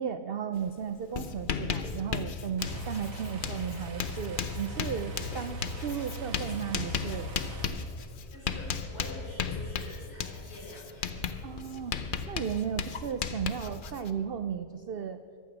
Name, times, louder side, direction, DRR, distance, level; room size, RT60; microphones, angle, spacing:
voice 1, 0.0-7.3 11.4-12.0 12.3-15.2, right 7 dB, 80° right, 10 dB, 0.5 m, -35 dB
Writing, 0.6-0.7 1.0-14.1, left 6 dB, 50° left, 0.6 m, -36 dB
sound 1, 2.6-7.7, right 1 dB, 60° right, 2.0 m, -40 dB
voice 2, 8.3-11.2, left 1 dB, 80° left, -4 dB, 4.9 m, -46 dB
15.0 x 12.0 x 5.9 m, 2.6 s
omnidirectional pair, 1.6 m